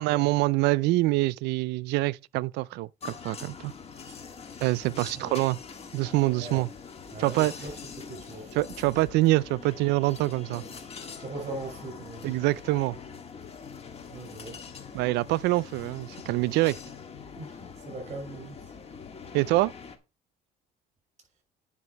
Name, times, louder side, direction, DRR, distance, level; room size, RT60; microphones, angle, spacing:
voice 1, 0.0-3.7 4.6-5.6 5.9-6.7 7.2-7.5 8.6-10.6 12.2-13.0 14.9-16.8 19.3-19.7, right 19 dB, 85° right, 0.4 m, -25 dB
sound 1, 3.0-20.0, left 6 dB, 35° left, 1.6 m, -44 dB
voice 2, 4.9-5.3 6.3-6.6 7.1-7.7 8.1-8.6 10.5-10.8 11.2-12.4 14.1-14.6 17.3-18.7, right 2 dB, 40° right, 6.3 m, -40 dB
9.6 x 5.8 x 4.6 m
cardioid pair, 110°, 17 cm